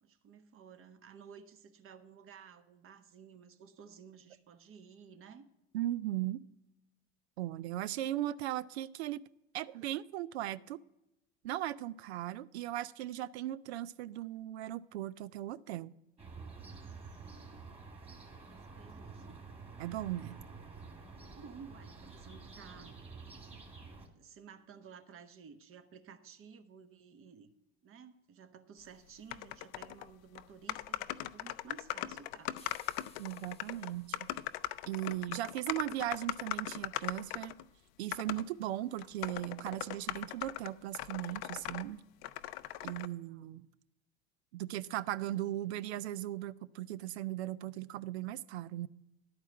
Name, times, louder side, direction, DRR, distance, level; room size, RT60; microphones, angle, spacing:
voice 1, 0.0-5.4 17.2-17.8 18.5-19.4 21.2-23.0 24.1-27.5 27.8-32.7 43.3-43.6, right 6 dB, 40° right, 1.1 m, -54 dB
voice 2, 5.7-6.4 7.4-9.2 9.5-10.8 11.4-15.9 19.8-20.4 33.2-34.3 34.9-37.6 38.0-42.0 42.8-43.7 44.5-48.9, right 14 dB, 80° right, 0.5 m, -38 dB
sound 1, 16.2-24.1, right 4 dB, 20° right, 2.2 m, -49 dB
Keyboard Typing Sounds, 29.3-30.1 30.4-30.5 30.7-37.6 38.1-38.5 39.0-41.9 42.2-43.1, left 14 dB, 65° left, 0.5 m, -40 dB
sound 2, 32.6-35.0, left 5 dB, 20° left, 1.1 m, -61 dB
11.0 x 4.6 x 7.4 m
hypercardioid pair, 75°, 32 cm